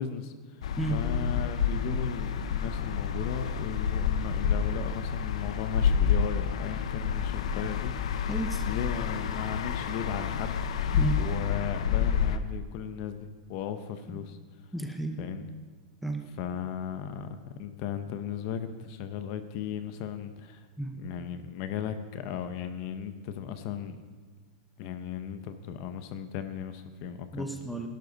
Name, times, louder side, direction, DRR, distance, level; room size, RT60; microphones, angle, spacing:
voice 1, 0.0-0.6 0.9-8.3 8.6-10.9 11.2-14.4 15.2-15.5 16.4-20.7 21.0-24.0 24.8-27.5, left 8 dB, 35° left, 10 dB, 0.8 m, -36 dB
sound 1, 0.6-12.4, left 7 dB, 75° left, 0.8 m, -29 dB
voice 2, 8.2-8.6 10.9-11.2 14.1-14.2 14.7-15.2 16.0-16.3 20.8-20.9 27.3-27.9, right 2 dB, ahead, 3 dB, 0.8 m, -32 dB
17.0 x 12.0 x 4.0 m, 1.4 s
supercardioid pair, 170°, 3 cm